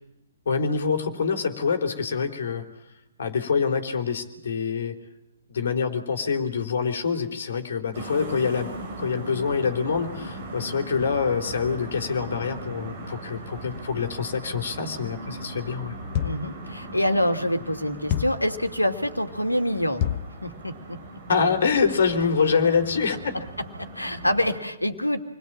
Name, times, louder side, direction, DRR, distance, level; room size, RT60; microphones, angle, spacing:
voice 1, 0.5-2.7 3.2-5.0 5.5-16.0 21.3-23.3, left 5 dB, 55° left, 4 dB, 3.8 m, -25 dB
sound 1, 7.9-24.6, right 2 dB, 35° right, 4.6 m, -39 dB
sound 2, 16.1-16.6 18.1-18.5 20.0-20.4, left 10 dB, 35° left, 1.1 m, -27 dB
voice 2, 16.2-20.1 20.4-21.2 23.3-25.2, equal, 85° left, 7 dB, 2.6 m, -26 dB
28.0 x 21.0 x 8.8 m, 0.83 s
figure-of-eight pair, 120°, 0 cm